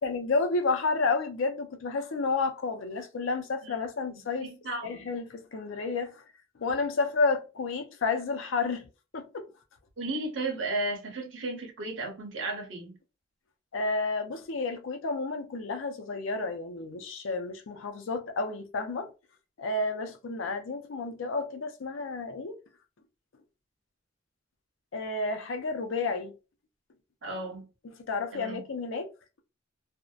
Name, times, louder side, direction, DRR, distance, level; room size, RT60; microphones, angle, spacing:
voice 1, 0.0-4.5 4.8-6.2 6.6-9.5 13.7-19.1 19.6-22.6 24.9-26.3 28.1-29.1, left 3 dB, 85° left, 0.5 m, -31 dB
voice 2, 4.1-5.0 10.0-13.0 27.2-27.7 28.3-28.6, right 2 dB, 80° right, 0.9 m, -34 dB
2.6 x 2.1 x 2.3 m
head